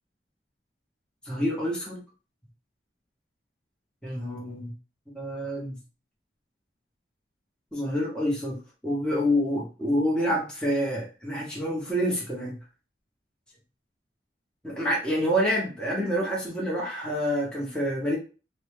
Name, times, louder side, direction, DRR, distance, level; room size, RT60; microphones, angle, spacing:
voice 1, 1.2-2.0 4.0-4.7 5.1-5.8 7.7-12.6 14.6-18.2, equal, 5° left, -4 dB, 0.8 m, -27 dB
2.6 x 2.1 x 3.1 m, 0.34 s
head